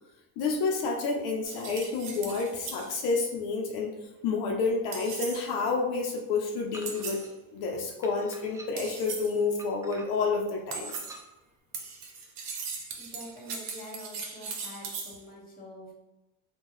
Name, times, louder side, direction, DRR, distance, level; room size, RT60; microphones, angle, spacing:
voice 1, 0.4-3.9 4.2-7.2 7.5-10.9, left 4 dB, 80° left, 0 dB, 0.6 m, -29 dB
sound 1, 1.5-2.9 4.9-5.5 6.9-7.3 8.8-9.4 10.7-11.2 11.7-15.2, right 5 dB, 80° right, 0.8 m, -39 dB
sound 2, 6.7-7.3 8.0-9.0 9.6-10.3 10.8-11.3, right 2 dB, 10° right, 0.3 m, -48 dB
voice 2, 13.0-15.9, left 1 dB, 25° left, -2 dB, 1.4 m, -45 dB
3.6 x 2.2 x 3.1 m, 1.0 s
supercardioid pair, 100°, 37 cm